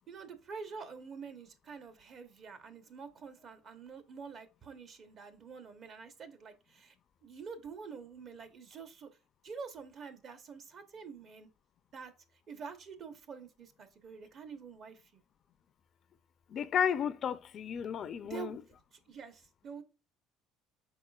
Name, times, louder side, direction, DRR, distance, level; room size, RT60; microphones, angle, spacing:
voice 1, 0.1-7.0 7.2-9.1 9.4-11.5 11.9-12.1 12.5-15.2 18.3-18.6 18.9-19.8, right 5 dB, 50° right, 0.9 m, -47 dB
voice 2, 16.5-18.6, left 8 dB, 50° left, 0.4 m, -33 dB
4.9 x 4.0 x 2.3 m
supercardioid pair, 95°, 0 cm